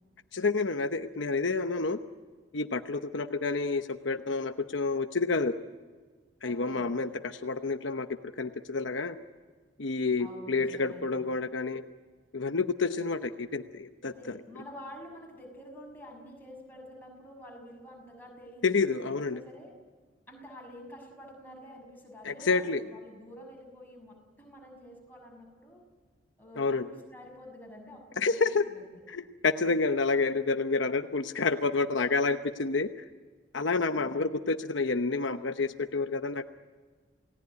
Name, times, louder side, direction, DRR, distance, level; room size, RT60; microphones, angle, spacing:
voice 1, 0.3-2.0 2.5-5.5 6.4-8.1 8.4-9.2 9.8-11.8 12.3-14.4 18.6-19.4 22.2-22.8 26.6-26.9 28.2-28.6 29.1-32.9 33.5-36.4, left 4 dB, 70° left, 8 dB, 0.9 m, -29 dB
voice 2, 6.4-6.9 10.2-11.3 14.0-19.7 20.3-25.8 26.4-28.8 33.7-34.3, equal, 10° left, -1 dB, 6.6 m, -49 dB
29.0 x 18.5 x 9.6 m, 1.5 s
head